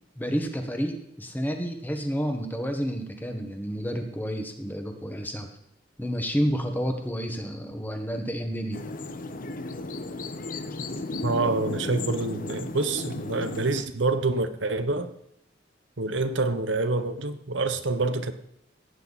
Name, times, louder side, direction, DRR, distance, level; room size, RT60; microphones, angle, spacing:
voice 1, 0.2-5.5 6.0-8.8, equal, 10° left, 4 dB, 1.6 m, -30 dB
sound 1, 8.7-13.8, left 2 dB, 45° left, 0.8 m, -34 dB
voice 2, 11.2-15.1 16.0-18.3, right 3 dB, 70° right, 10 dB, 1.1 m, -27 dB
16.0 x 9.4 x 4.2 m, 0.78 s
head